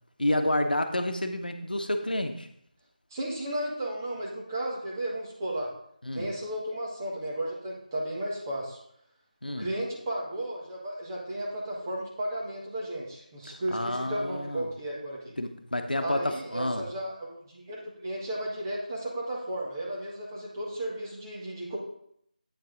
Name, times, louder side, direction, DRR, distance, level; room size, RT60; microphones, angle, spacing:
voice 1, 0.2-2.5 6.0-6.3 9.4-9.7 13.7-14.7 15.4-16.9, left 1 dB, 85° left, 6 dB, 1.0 m, -29 dB
voice 2, 3.1-5.7 6.1-8.8 9.6-15.3 16.0-21.8, right 1 dB, 25° right, -4 dB, 1.6 m, -34 dB
8.6 x 5.4 x 3.8 m, 0.70 s
figure-of-eight pair, 165°, 5 cm